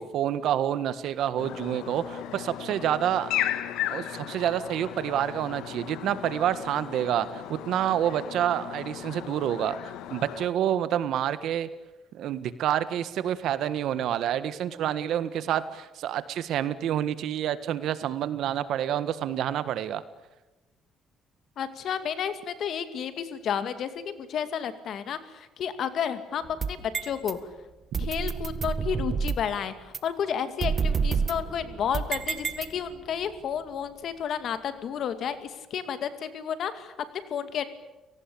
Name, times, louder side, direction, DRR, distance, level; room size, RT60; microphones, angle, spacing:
voice 1, 0.0-3.3 3.9-11.7 12.1-20.0, right 10 dB, 70° right, 13 dB, 1.6 m, -28 dB
sound 1, 1.4-10.5, left 12 dB, 85° left, 1.6 m, -36 dB
voice 2, 21.6-27.4 28.0-37.7, left 8 dB, 55° left, 11 dB, 2.4 m, -31 dB
sound 2, 26.4-27.3 27.9-29.5 29.9-30.0 30.6-33.1, right 5 dB, 35° right, 1.7 m, -29 dB
30.0 x 18.5 x 8.7 m, 1.0 s
cardioid pair, 130°, 0 cm